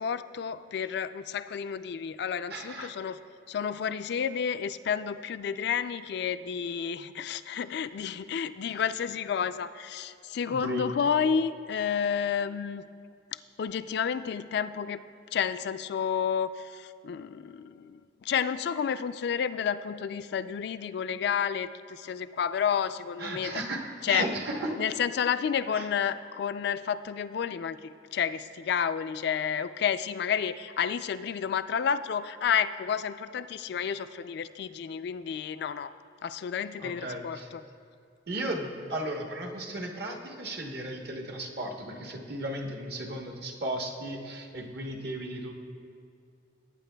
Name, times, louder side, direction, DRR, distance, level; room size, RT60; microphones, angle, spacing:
voice 1, 0.0-3.2 3.5-12.8 13.6-15.0 15.3-23.6 24.0-24.3 24.8-35.9 36.2-37.6, left 7 dB, 65° left, 13 dB, 0.3 m, -30 dB
voice 2, 2.5-2.9 10.5-10.9 23.2-24.8 25.7-25.9 36.8-37.5 38.3-45.5, right 1 dB, 60° right, 1 dB, 1.1 m, -35 dB
18.0 x 8.9 x 2.2 m, 2.4 s
head